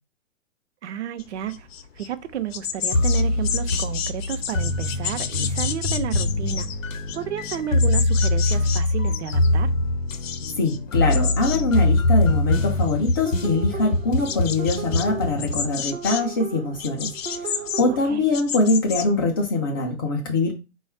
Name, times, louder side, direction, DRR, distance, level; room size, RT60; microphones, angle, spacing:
voice 1, 0.8-1.7 2.0-6.7 7.1-9.7 18.1-18.2, right 10 dB, 60° right, 0.7 m, -32 dB
sound 1, 1.2-2.1 2.3-9.5 9.8-10.8 11.1-11.6 11.9-12.5 12.8-13.5 14.0-15.1 15.4-16.3 16.8-19.1, left 8 dB, 50° left, 0.7 m, -31 dB
sound 2, 2.9-15.7, left 2 dB, 90° left, 0.6 m, -23 dB
voice 2, 10.6-20.5, left 3 dB, 20° left, 0.3 m, -23 dB
sound 3, 13.3-18.1, right 8 dB, 80° right, 1.0 m, -36 dB
4.0 x 2.3 x 4.3 m
figure-of-eight pair, 115°, 38 cm